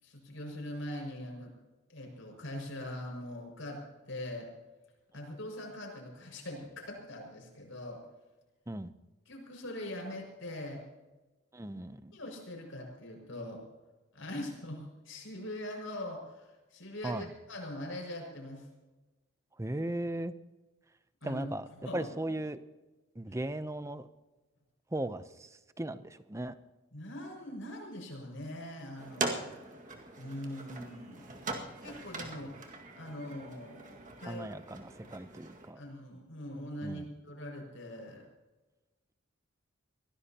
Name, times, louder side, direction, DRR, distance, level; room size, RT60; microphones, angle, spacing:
voice 1, 0.0-1.5 1.9-4.5 5.1-8.0 9.3-10.8 12.1-13.6 14.1-18.6 21.2-21.5 21.8-22.0 23.3-23.4 26.9-29.7 30.2-34.5 35.8-38.2, left 1 dB, 70° left, 1 dB, 6.0 m, -42 dB
voice 2, 11.5-12.1 17.0-17.3 19.6-20.3 21.2-21.7 21.9-22.6 23.1-24.1 24.9-26.5 34.2-35.8 36.8-37.1, right 1 dB, 15° right, 12 dB, 0.6 m, -37 dB
sound 1, 29.0-35.7, right 3 dB, 40° right, 2.0 m, -41 dB
23.5 x 17.0 x 2.9 m, 1.1 s
head